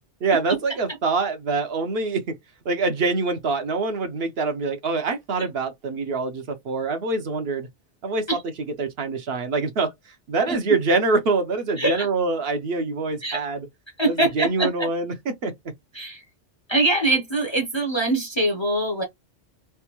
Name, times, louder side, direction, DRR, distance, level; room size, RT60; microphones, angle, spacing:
voice 1, 0.2-2.3 2.7-7.7 8.0-8.4 8.8-9.9 10.3-13.7 14.0-15.5, right 3 dB, 60° right, 0.9 m, -25 dB
voice 2, 14.0-14.7 15.9-16.2 16.7-19.0, right 2 dB, 30° left, 0.6 m, -23 dB
3.4 x 2.2 x 2.9 m
omnidirectional pair, 1.2 m